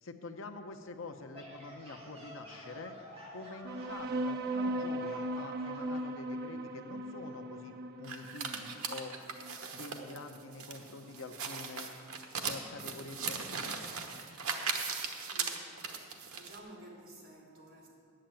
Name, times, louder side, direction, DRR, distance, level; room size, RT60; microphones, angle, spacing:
voice 1, 0.0-3.0 3.3-9.1 9.7-11.9 12.4-13.8, left 3 dB, 65° left, 6 dB, 0.8 m, -46 dB
sound 1, 1.3-6.1, equal, 30° right, 2.8 m, -50 dB
sound 2, 3.6-10.6, right 1 dB, 45° right, 0.7 m, -38 dB
sound 3, 8.0-16.6, right 5 dB, 80° right, 1.1 m, -38 dB
voice 2, 15.3-15.7 16.3-17.9, right 1 dB, 65° right, -2 dB, 3.0 m, -52 dB
8.9 x 7.8 x 9.1 m, 2.2 s
head